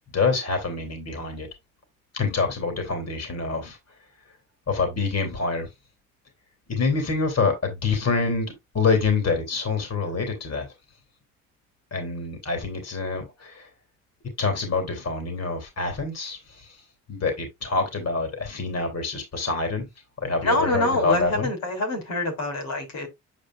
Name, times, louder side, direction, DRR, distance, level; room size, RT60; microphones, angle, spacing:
voice 1, 0.1-1.5 2.1-3.8 4.7-5.7 6.7-8.5 8.7-10.7 11.9-13.7 14.4-16.8 17.1-19.9 20.2-21.5, left 4 dB, 45° left, 3.2 m, -26 dB
voice 2, 20.4-23.1, left 2 dB, 75° left, 3.4 m, -25 dB
8.6 x 5.0 x 2.5 m
supercardioid pair, 60°, 35 cm